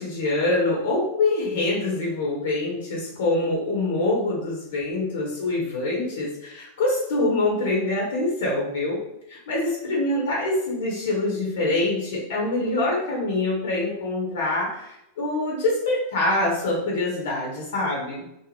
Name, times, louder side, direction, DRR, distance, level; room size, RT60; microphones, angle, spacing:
voice 1, 0.0-9.0 9.3-18.2, left 2 dB, 60° left, -2 dB, 0.8 m, -25 dB
2.6 x 2.0 x 3.3 m, 0.83 s
figure-of-eight pair, 90°, 0 cm